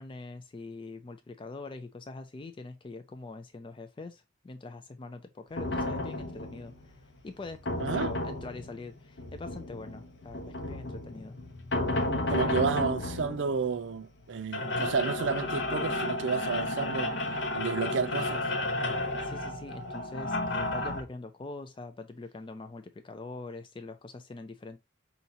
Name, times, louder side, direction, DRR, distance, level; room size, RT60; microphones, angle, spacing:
voice 1, 0.0-11.4 12.3-12.6 19.2-24.8, left 3 dB, 25° left, 0.3 m, -43 dB
sound 1, 5.6-21.0, left 2 dB, 70° left, 0.8 m, -33 dB
voice 2, 7.8-8.1 12.3-17.1 17.5-18.4, right 5 dB, 75° right, 0.5 m, -31 dB
5.4 x 2.8 x 2.7 m
head